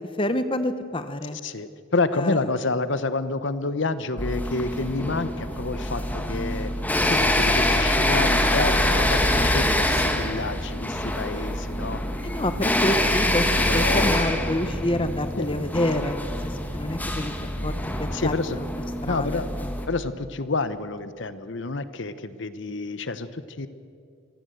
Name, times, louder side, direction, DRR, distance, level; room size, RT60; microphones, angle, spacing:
voice 1, 0.0-1.4 2.1-2.4 12.2-13.5 13.7-18.7 19.0-19.7, left 1 dB, 25° left, 11 dB, 0.9 m, -28 dB
voice 2, 1.3-6.7 7.0-12.0 12.6-12.7 13.6-14.3 15.4-15.5 17.6-17.7 18.1-18.6 19.0-19.5 19.9-23.7, left 3 dB, 60° left, 13 dB, 0.9 m, -29 dB
sound 1, 4.2-19.9, left 1 dB, 10° left, 1.6 m, -25 dB
24.5 x 17.0 x 7.9 m, 2.4 s
head